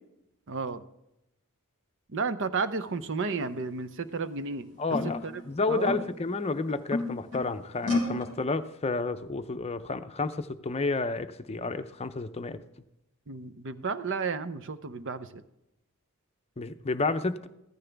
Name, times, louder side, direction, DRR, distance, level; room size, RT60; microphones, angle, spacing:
voice 1, 0.5-0.8 2.1-4.7 5.2-5.4 5.7-6.0 13.3-15.4, right 4 dB, 60° right, 13 dB, 0.7 m, -32 dB
sound 1, 3.1-3.5 4.2-4.3 4.9-6.3 6.7-7.5 7.8-8.3, left 2 dB, 75° right, 3.7 m, -31 dB
voice 2, 4.8-12.6 16.6-17.5, left 3 dB, 30° left, 10 dB, 0.6 m, -31 dB
15.0 x 13.5 x 3.4 m, 0.87 s
head